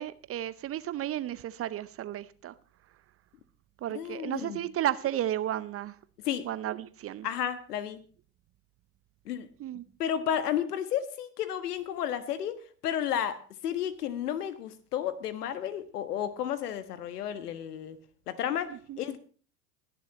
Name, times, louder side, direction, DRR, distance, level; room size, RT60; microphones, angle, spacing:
voice 1, 0.0-2.5 3.8-6.0 6.4-7.3 9.6-9.8 18.7-19.0, right 12 dB, 30° right, 0.6 m, -33 dB
voice 2, 3.9-4.6 6.2-6.5 7.2-8.0 9.3-9.5 10.0-13.4 13.6-18.0 18.3-19.2, left 9 dB, 80° left, 1.5 m, -32 dB
21.0 x 7.1 x 4.0 m
hypercardioid pair, 90°, 46 cm